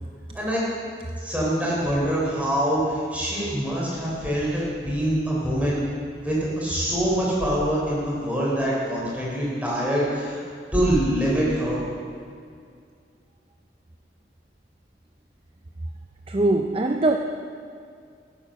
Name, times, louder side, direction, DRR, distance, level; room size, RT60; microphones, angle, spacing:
voice 1, 1.2-5.8 6.2-10.5 10.7-11.8, equal, 10° right, -6 dB, 3.8 m, -24 dB
voice 2, 16.3-17.2, right 2 dB, 30° right, 4 dB, 0.5 m, -22 dB
15.0 x 8.6 x 6.4 m, 2.3 s
head